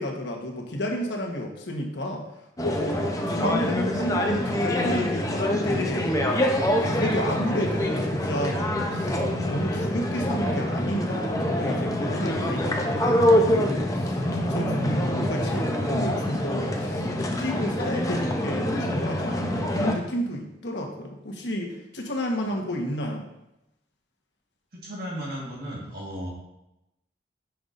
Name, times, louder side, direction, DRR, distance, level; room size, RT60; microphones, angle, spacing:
voice 1, 0.0-2.3 2.6-6.4 6.8-8.6 8.9-23.2, equal, 75° left, 1 dB, 1.3 m, -31 dB
sound 1, 2.6-20.0, left 1 dB, 20° left, 0.7 m, -25 dB
voice 2, 8.9-9.2 14.4-15.2 24.7-26.3, right 1 dB, 55° right, -4 dB, 1.7 m, -36 dB
9.4 x 5.9 x 2.6 m, 0.90 s
head